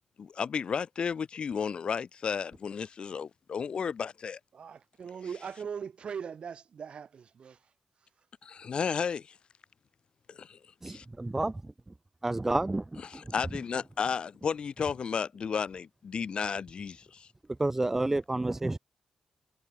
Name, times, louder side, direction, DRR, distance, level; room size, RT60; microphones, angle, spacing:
voice 1, 0.2-4.4 8.4-9.3 10.3-10.6 10.9-11.0 13.0-17.3, left 6 dB, 55° left, 0.6 m, -33 dB
voice 2, 4.5-7.6, right 7 dB, 60° right, 3.6 m, -40 dB
voice 3, 10.8-11.6 12.2-13.3 17.6-18.8, right 2 dB, 15° right, 0.9 m, -30 dB
cardioid pair, 95°, 2 cm